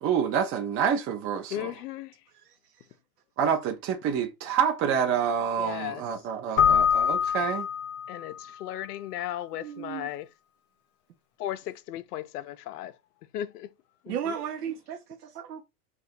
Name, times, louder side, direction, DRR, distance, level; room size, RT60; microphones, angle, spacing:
voice 1, 0.0-1.7 3.4-7.7, right 7 dB, 30° right, 0.6 m, -27 dB
voice 2, 1.5-2.1 5.6-6.0 8.1-10.3 11.4-12.9 13.3-13.7 14.0-14.4, left 12 dB, 80° left, 0.6 m, -36 dB
Keyboard (musical), 6.6-8.4, left 8 dB, 50° left, 0.8 m, -24 dB
voice 3, 9.6-10.1 14.1-15.6, right 8 dB, 90° right, 0.7 m, -35 dB
2.7 x 2.4 x 4.2 m
hypercardioid pair, 115°, 46 cm